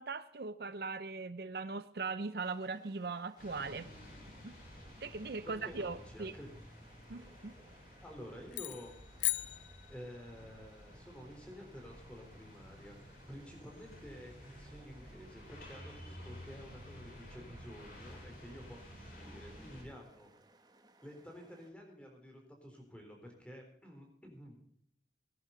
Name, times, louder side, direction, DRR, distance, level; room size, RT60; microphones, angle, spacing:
voice 1, 0.0-3.9 4.4-4.5 5.0-6.4 7.1-7.6, right 4 dB, 60° right, 13 dB, 0.6 m, -40 dB
sound 1, 2.4-21.7, right 2 dB, 25° right, 1.4 m, -65 dB
sound 2, 3.4-19.8, equal, 55° left, 6.3 m, -53 dB
voice 2, 5.2-6.5 8.0-13.0 13.3-20.3 21.0-24.6, equal, 5° left, 1 dB, 3.9 m, -51 dB
sound 3, 8.5-10.4, left 17 dB, 85° left, 0.5 m, -38 dB
19.0 x 11.0 x 3.9 m, 0.66 s
head